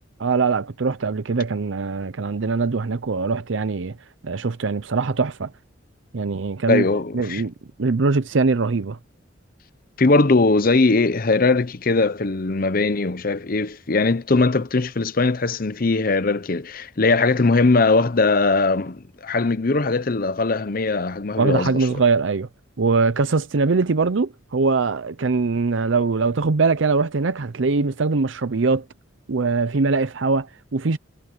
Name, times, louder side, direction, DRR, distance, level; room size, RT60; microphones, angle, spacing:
voice 1, 0.2-4.0 4.2-5.5 6.1-6.8 7.1-7.5 7.8-9.0 21.4-22.5 22.8-28.8 29.3-31.0, right 4 dB, 75° right, 0.7 m, -22 dB
voice 2, 6.7-7.4 10.0-21.8, left 3 dB, 50° left, 0.8 m, -20 dB
head